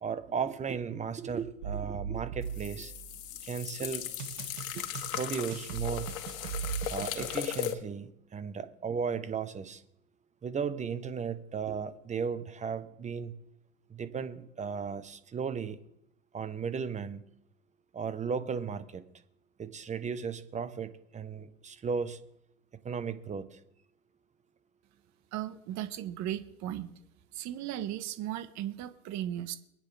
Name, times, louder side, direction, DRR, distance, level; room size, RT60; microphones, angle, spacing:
voice 1, 0.0-2.9 3.4-4.0 5.2-6.1 6.9-9.8 10.4-13.3 13.9-15.8 16.3-17.2 17.9-19.0 19.6-22.2 22.8-23.6, right 6 dB, 15° right, 12 dB, 0.9 m, -35 dB
sound 1, 1.6-3.5 4.2-7.3, right 8 dB, 70° right, 2.2 m, -39 dB
sound 2, 2.4-7.7, left 12 dB, 75° left, 1.7 m, -37 dB
voice 2, 25.3-26.9 27.3-29.6, right 12 dB, 40° right, 11 dB, 1.2 m, -36 dB
23.5 x 9.5 x 3.4 m, 0.78 s
hypercardioid pair, 110°, 41 cm